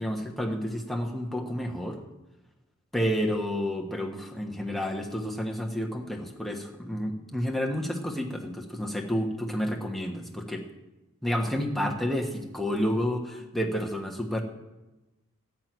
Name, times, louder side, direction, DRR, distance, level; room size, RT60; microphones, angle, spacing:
voice 1, 0.0-2.0 2.9-10.6 11.2-14.4, equal, ahead, 0 dB, 1.1 m, -30 dB
13.5 x 6.1 x 9.1 m, 1.0 s
head